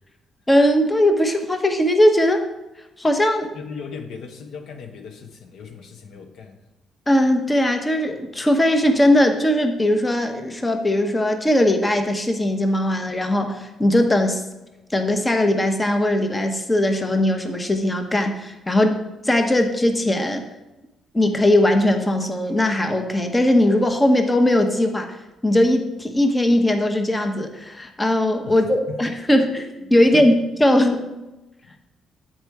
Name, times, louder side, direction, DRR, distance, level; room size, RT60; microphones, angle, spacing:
voice 1, 0.5-2.4 3.0-3.5 7.1-14.4 14.9-19.0 19.2-20.5 21.1-25.2 25.4-30.3 30.6-31.1, left 1 dB, 15° left, 5 dB, 0.8 m, -19 dB
voice 2, 3.5-6.6 28.4-28.6 28.9-29.0 30.1-30.3, left 5 dB, 75° left, 4 dB, 0.9 m, -37 dB
7.9 x 4.4 x 4.7 m, 1.0 s
cardioid pair, 90°, 0 cm